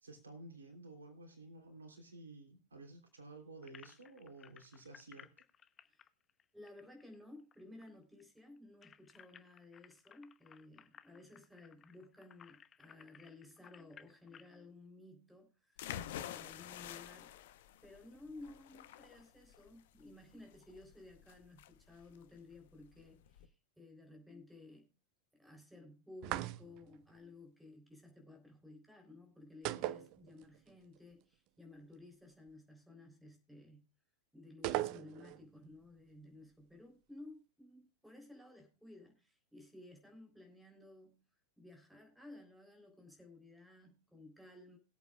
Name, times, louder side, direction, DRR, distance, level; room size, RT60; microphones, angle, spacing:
voice 1, 0.0-5.3, right 2 dB, 70° right, 3.2 m, -53 dB
sound 1, 3.6-7.5 7.8-7.9 8.2-14.5, left 8 dB, 25° left, 0.9 m, -60 dB
voice 2, 6.5-17.4 17.8-24.9 25.3-33.9 34.3-41.2 41.6-44.8, left 2 dB, ahead, 3.8 m, -56 dB
sound 2, 15.8-23.5, left 11 dB, 55° left, 1.0 m, -49 dB
sound 3, 26.2-27.0 29.7-30.7 31.0-31.1 34.6-35.4, right 16 dB, 40° right, 0.6 m, -38 dB
21.5 x 8.3 x 2.4 m
figure-of-eight pair, 90°, 0 cm